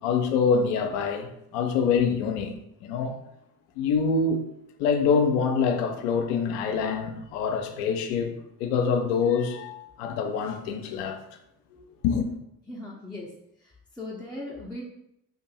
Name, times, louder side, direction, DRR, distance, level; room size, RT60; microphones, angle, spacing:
voice 1, 0.0-2.5 2.8-3.2 3.8-4.4 4.8-11.2 11.7-12.3, left 5 dB, 70° left, 0.6 m, -25 dB
voice 2, 12.7-13.3 13.6-14.8, left 2 dB, ahead, 0.5 m, -38 dB
2.6 x 2.5 x 4.0 m
figure-of-eight pair, 50°, 47 cm